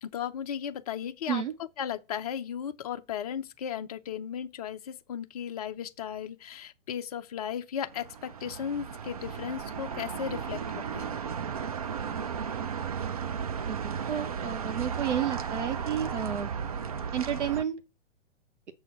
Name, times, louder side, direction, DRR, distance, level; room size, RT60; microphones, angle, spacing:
voice 1, 0.0-1.4 1.8-11.1, left 9 dB, 30° left, 0.5 m, -36 dB
sound 1, 7.9-17.6, right 7 dB, 30° right, 0.4 m, -35 dB
voice 2, 13.7-16.5 17.1-17.8, right 9 dB, 65° right, 1.1 m, -31 dB
7.0 x 4.3 x 5.9 m
figure-of-eight pair, 125°, 38 cm